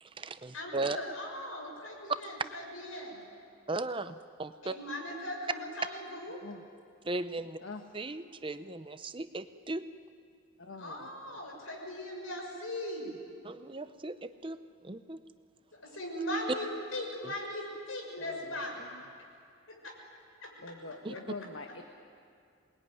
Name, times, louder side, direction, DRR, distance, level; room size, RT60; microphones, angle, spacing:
voice 1, 0.0-1.0 3.7-4.7 7.0-7.6 7.9-9.8 13.4-14.6 14.8-15.2 17.2-17.3 21.0-21.1, right 2 dB, 25° right, 11 dB, 0.6 m, -37 dB
voice 2, 0.5-3.2 4.6-6.4 10.8-13.2 15.8-18.8 19.8-19.9 20.4-20.5, left 1 dB, 85° left, 0 dB, 6.5 m, -39 dB
voice 3, 10.6-11.4 18.2-19.0 20.6-21.8, left 3 dB, 70° left, 4 dB, 1.4 m, -45 dB
27.0 x 20.5 x 9.5 m, 2.3 s
head